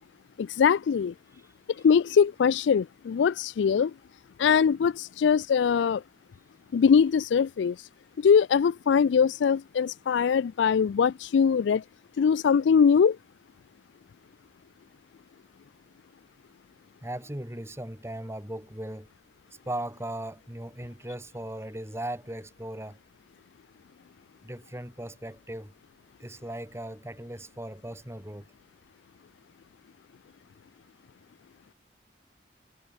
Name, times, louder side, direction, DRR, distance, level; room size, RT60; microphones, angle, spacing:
voice 1, 0.4-1.1 1.8-3.9 4.4-6.0 6.7-7.9 8.2-11.8 12.2-13.2, left 6 dB, 80° left, 0.3 m, -22 dB
voice 2, 17.0-19.1 19.7-23.0 24.4-25.7 26.2-28.5, right 1 dB, 15° right, 2.9 m, -38 dB
head